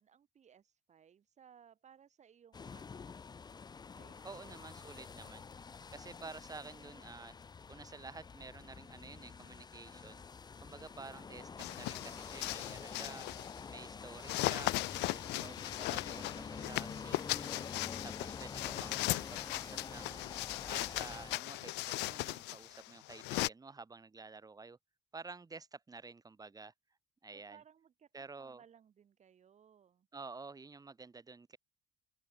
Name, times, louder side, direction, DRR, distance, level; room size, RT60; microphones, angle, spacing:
voice 1, 0.0-3.2 3.9-4.8 16.2-17.1 27.3-30.1, right 8 dB, 45° right, 2.6 m, -63 dB
sound 1, 2.5-21.4, left 5 dB, 25° left, 0.8 m, -48 dB
voice 2, 4.2-5.4 5.9-7.3 7.7-10.2 10.6-13.3 13.7-17.5 18.0-20.2 20.6-24.8 25.1-26.7 27.2-27.6 28.1-28.6 30.1-31.6, right 4 dB, 20° right, 4.2 m, -51 dB
sound 2, 11.6-13.6 14.2-23.5, left 21 dB, 85° left, 0.5 m, -38 dB
open air
cardioid pair, 110°, 17 cm